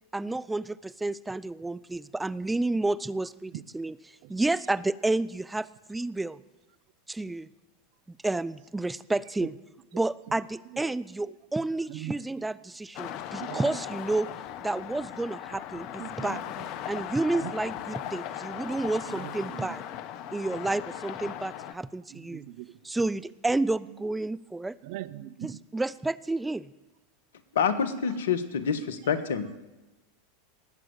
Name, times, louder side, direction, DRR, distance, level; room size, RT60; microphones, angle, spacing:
voice 1, 0.1-3.9 4.3-6.4 7.1-7.5 8.1-9.5 9.9-14.3 14.6-16.4 16.9-19.8 20.3-22.4 22.8-24.8 25.4-26.7, right 2 dB, 10° right, 18 dB, 0.5 m, -30 dB
sound 1, 12.9-21.7, left 10 dB, 50° left, 1.0 m, -38 dB
voice 2, 16.0-16.7 17.4-17.5 19.1-19.7 22.1-22.8 23.9-24.0 24.8-25.6, right 15 dB, 55° right, 19 dB, 0.6 m, -41 dB
voice 3, 27.5-29.5, left 6 dB, 75° left, 13 dB, 1.3 m, -27 dB
19.0 x 7.8 x 9.5 m, 1.1 s
hypercardioid pair, 90°, 0 cm